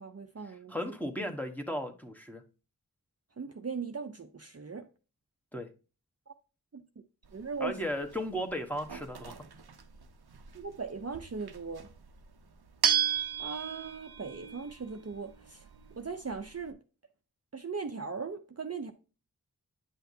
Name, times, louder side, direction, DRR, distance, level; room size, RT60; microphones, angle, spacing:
voice 1, 0.0-0.7 3.4-4.9 6.3-6.4 6.7-6.8 7.3-7.7 10.5-11.9 13.4-15.7 16.0-16.8 17.5-18.9, right 5 dB, 40° right, 0.6 m, -39 dB
voice 2, 0.7-2.4 5.5-5.7 7.6-9.3, equal, 5° left, 1.2 m, -35 dB
sound 1, 7.2-16.7, right 8 dB, 85° right, 0.7 m, -36 dB
9.3 x 5.7 x 2.7 m
wide cardioid pair, 45°, 37 cm